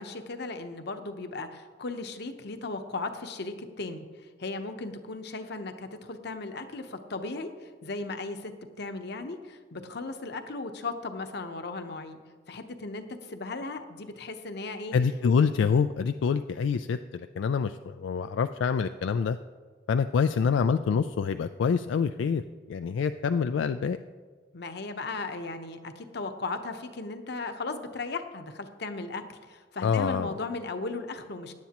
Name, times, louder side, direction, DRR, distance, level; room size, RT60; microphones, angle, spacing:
voice 1, 0.0-4.0 4.4-7.5 7.8-12.2 12.5-14.9 24.5-31.5, left 3 dB, 65° left, 7 dB, 0.9 m, -36 dB
voice 2, 14.9-19.4 19.9-22.4 22.7-24.0 29.8-30.4, left 6 dB, 85° left, 9 dB, 0.3 m, -26 dB
16.5 x 10.5 x 3.0 m, 1.5 s
head